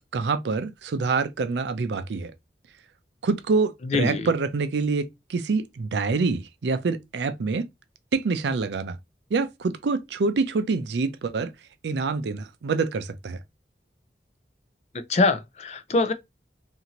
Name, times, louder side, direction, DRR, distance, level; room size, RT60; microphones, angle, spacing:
voice 1, 0.0-2.3 3.2-7.7 8.1-9.0 9.3-11.5 11.8-13.4, right 4 dB, 85° right, 0.4 m, -26 dB
voice 2, 3.8-4.3 15.1-16.1, left 3 dB, 40° left, 0.4 m, -23 dB
2.7 x 2.5 x 2.8 m
head